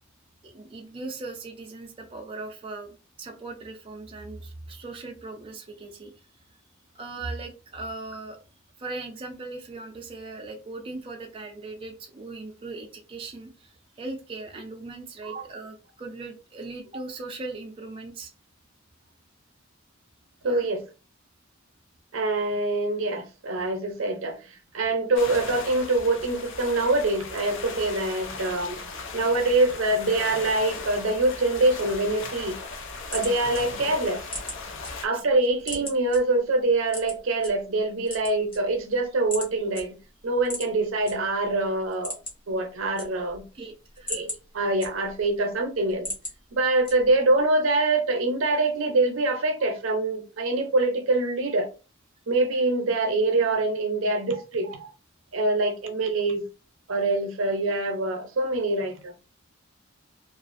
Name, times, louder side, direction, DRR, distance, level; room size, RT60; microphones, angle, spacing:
voice 1, 0.4-6.1 6.9-8.4 8.8-18.3 20.4-20.8 35.1-35.2 43.5-44.2, right 3 dB, 25° right, 0.4 m, -39 dB
voice 2, 20.4-20.8 22.1-28.8 29.1-32.6 33.1-34.3 35.0-40.0 40.2-42.2 42.5-43.4 44.1-44.3 44.5-46.1 46.5-51.7 52.3-54.9 55.3-56.4 56.9-59.1, right 2 dB, 70° right, 0.6 m, -24 dB
sound 1, 25.2-35.1, left 4 dB, 65° left, 0.5 m, -37 dB
sound 2, 33.1-34.9 35.3-36.2 36.9-37.5 38.0-38.9 39.3-39.5 39.7-39.8 40.4-41.1 41.5-41.6 41.9-42.5 42.8-43.5 43.8-45.3 45.7-46.3 46.8-47.3, left 1 dB, 25° left, 1.0 m, -36 dB
2.4 x 2.3 x 2.5 m
head